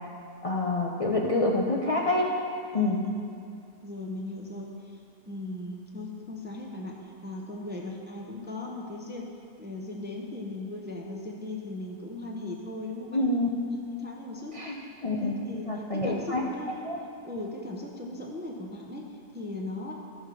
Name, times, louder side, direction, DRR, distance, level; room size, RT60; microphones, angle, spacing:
voice 1, 0.4-2.3 2.7-3.0 13.1-13.5 14.5-14.7 15.0-15.3 15.7-16.4 16.8-17.0, left 2 dB, 45° left, -1 dB, 0.4 m, -26 dB
voice 2, 2.7-3.1 3.8-9.2 9.6-13.2 13.9-14.8 15.1-16.8 17.2-19.9, left 2 dB, 10° right, -1 dB, 0.5 m, -38 dB
13.5 x 6.3 x 4.9 m, 2.4 s
omnidirectional pair, 1.7 m